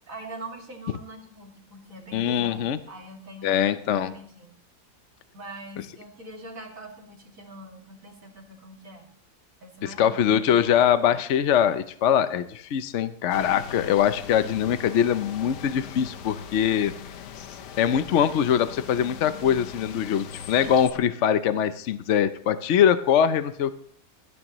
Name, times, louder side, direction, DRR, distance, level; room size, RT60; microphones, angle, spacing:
voice 1, 0.1-2.6 2.9-4.6 5.3-9.1 9.6-10.1, right 1 dB, 50° right, 2 dB, 2.8 m, -43 dB
voice 2, 2.1-2.8 3.4-4.1 10.0-16.9 17.8-23.7, left 9 dB, 60° left, 11 dB, 0.8 m, -22 dB
sound 1, 13.3-20.9, left 7 dB, 80° left, 1.5 m, -40 dB
22.5 x 12.5 x 3.1 m, 0.64 s
omnidirectional pair, 1.8 m